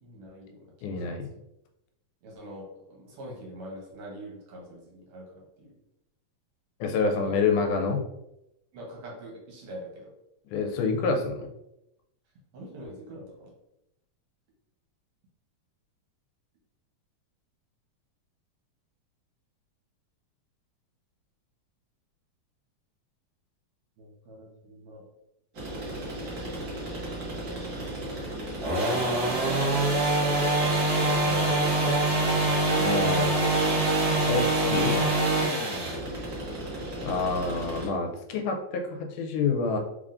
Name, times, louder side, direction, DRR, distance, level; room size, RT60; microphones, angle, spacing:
voice 1, 0.0-0.6 0.9-1.2 2.2-5.7 7.2-7.4 8.7-10.1 12.5-13.5 24.0-25.0 26.9-27.6 31.3-31.8 35.7-36.1, right 1 dB, 70° right, -2 dB, 2.1 m, -44 dB
voice 2, 0.8-1.3 6.8-8.0 10.5-11.5 32.8-33.4 34.3-35.0 37.0-39.8, left 4 dB, 85° left, 4 dB, 2.1 m, -27 dB
sound 1, 25.6-37.9, right 2 dB, 85° right, 0.8 m, -26 dB
4.7 x 3.6 x 2.5 m, 0.85 s
omnidirectional pair, 3.5 m